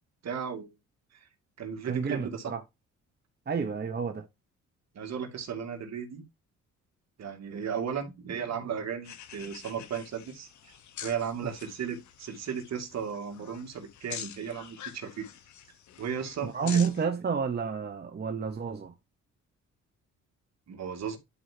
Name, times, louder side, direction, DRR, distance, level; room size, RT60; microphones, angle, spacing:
voice 1, 0.2-0.8 1.6-2.5 4.9-6.2 7.2-10.7 11.0-15.3 16.0-16.8 20.7-21.2, right 7 dB, 60° right, 2.4 m, -35 dB
voice 2, 1.8-2.6 3.5-4.2 11.4-11.5 16.4-18.9, right 6 dB, 35° right, 1.1 m, -30 dB
sound 1, 9.0-17.1, left 10 dB, 70° left, 1.3 m, -46 dB
11.0 x 4.8 x 2.9 m
cardioid pair, 90°, 30 cm